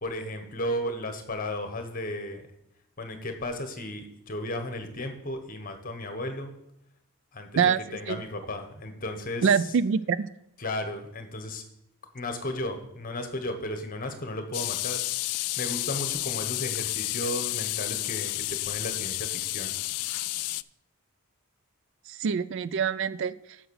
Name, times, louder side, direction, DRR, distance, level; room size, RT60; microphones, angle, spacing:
voice 1, 0.0-2.4 3.0-6.5 7.3-9.7 10.6-11.6 12.1-15.0 15.6-19.7, left 1 dB, 40° left, 7 dB, 1.2 m, -34 dB
voice 2, 7.6-8.2 9.4-10.3 22.1-23.3, right 6 dB, 55° right, 17 dB, 0.3 m, -25 dB
sound 1, 14.5-20.6, left 19 dB, 90° left, 0.3 m, -31 dB
8.0 x 6.1 x 6.3 m, 0.81 s
head